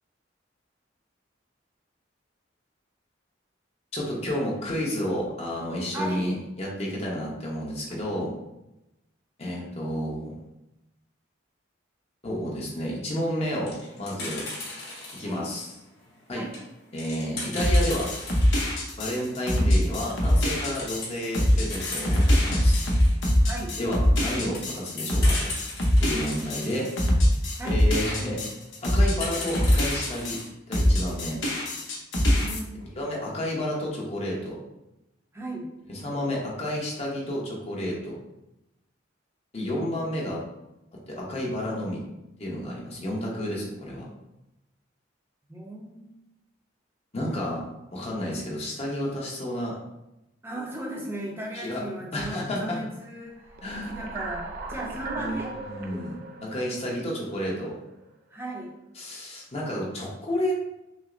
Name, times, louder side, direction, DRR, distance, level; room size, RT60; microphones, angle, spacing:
voice 1, 3.9-8.3 9.4-10.3 12.2-14.4 15.1-15.7 16.3-16.4 16.9-18.1 19.0-22.8 23.8-25.5 26.0-26.9 27.6-28.4 28.8-30.4 30.7-31.4 32.9-34.6 36.0-38.2 39.5-40.4 41.1-42.0 42.4-44.0 47.1-47.6 47.9-49.8 51.5-51.8 52.1-52.8 53.6-53.9 55.1-56.1 56.4-57.8 59.0-60.5, equal, 35° left, -3 dB, 0.8 m, -31 dB
voice 2, 5.9-6.3 15.2-15.5 16.4-16.6 23.4-23.7 27.5-27.8 32.2-32.8 35.3-35.7 45.5-46.2 50.4-55.5 58.3-58.7, right 1 dB, 10° right, -2 dB, 0.7 m, -36 dB
sound 1, 13.4-15.4 15.9-18.7 19.1-19.2 19.5-19.6 20.0-20.5 20.7-23.2 23.8-27.1 28.0-28.4 29.1-30.5, left 2 dB, 55° left, 1.4 m, -38 dB
sound 2, 17.6-30.4 30.7-32.6, equal, 80° left, 0.8 m, -23 dB
sound 3, 53.4-57.7, right 3 dB, 50° right, 0.4 m, -38 dB
6.1 x 2.1 x 2.5 m, 0.91 s
head